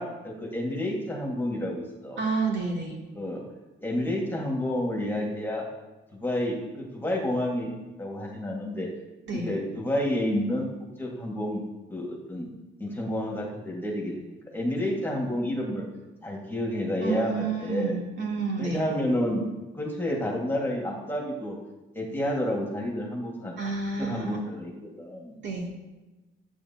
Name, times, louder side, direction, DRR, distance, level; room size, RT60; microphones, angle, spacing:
voice 1, 0.0-2.2 3.1-3.4 3.8-5.7 6.1-8.9 9.3-10.7 11.0-12.5 12.8-15.9 16.2-18.0 18.6-21.6 21.9-23.5 24.0-25.4, left 1 dB, 10° left, -2 dB, 1.8 m, -30 dB
voice 2, 2.2-3.0 9.3-9.5 17.0-18.8 23.6-24.4 25.4-25.7, right 4 dB, 65° right, -2 dB, 2.7 m, -29 dB
14.0 x 8.3 x 2.9 m, 1.1 s
cardioid pair, 130°, 20 cm